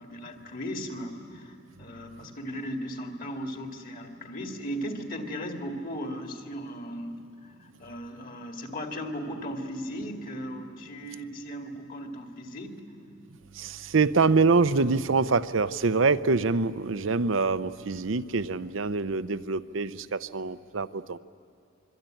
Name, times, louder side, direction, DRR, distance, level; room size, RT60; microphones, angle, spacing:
voice 1, 0.0-12.8, equal, 45° left, 4 dB, 2.4 m, -37 dB
voice 2, 13.5-21.2, right 4 dB, 75° right, 14 dB, 0.7 m, -25 dB
25.5 x 23.5 x 9.1 m, 2.6 s
head